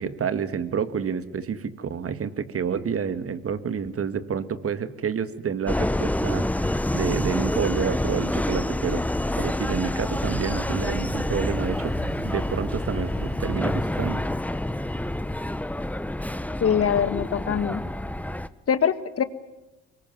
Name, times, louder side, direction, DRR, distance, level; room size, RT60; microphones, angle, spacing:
voice 1, 0.0-9.1 9.4-11.9 12.2-14.2, right 7 dB, 50° right, 13 dB, 2.0 m, -29 dB
Subway metro underground, 5.7-18.5, left 1 dB, 5° left, 1.1 m, -27 dB
Thunder, 10.0-15.9, right 2 dB, 30° right, 4.1 m, -41 dB
voice 2, 16.6-17.8 18.7-19.2, left 8 dB, 50° left, 13 dB, 1.8 m, -23 dB
24.0 x 21.5 x 9.4 m, 1.0 s
hypercardioid pair, 55°, 30 cm